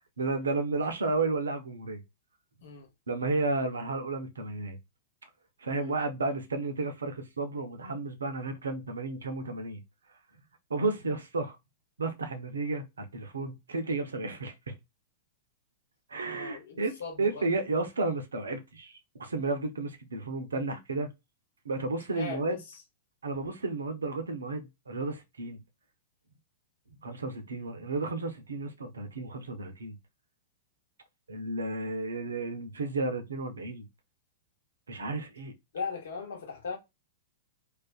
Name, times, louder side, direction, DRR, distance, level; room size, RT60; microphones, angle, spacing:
voice 1, 0.2-2.0 3.1-4.8 5.6-9.8 10.7-11.6 12.0-14.7 16.1-21.1 21.6-22.6 23.2-25.6 27.0-30.0 31.3-33.8 34.9-35.5, right 3 dB, 70° right, 0.6 m, -32 dB
voice 2, 16.3-17.4 22.1-22.6 35.7-36.8, left 5 dB, 60° left, 1.0 m, -38 dB
2.4 x 2.3 x 2.2 m
figure-of-eight pair, 100°, 0 cm